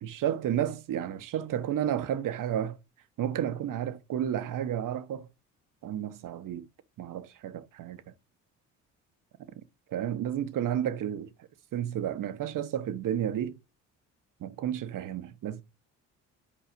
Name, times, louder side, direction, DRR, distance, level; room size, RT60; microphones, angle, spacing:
voice 1, 0.0-2.8 3.2-5.3 5.8-6.7 7.0-8.0 9.9-11.3 11.7-13.6 14.4-15.6, right 10 dB, 60° right, 1.1 m, -31 dB
8.7 x 4.7 x 5.1 m
supercardioid pair, 60°, 36 cm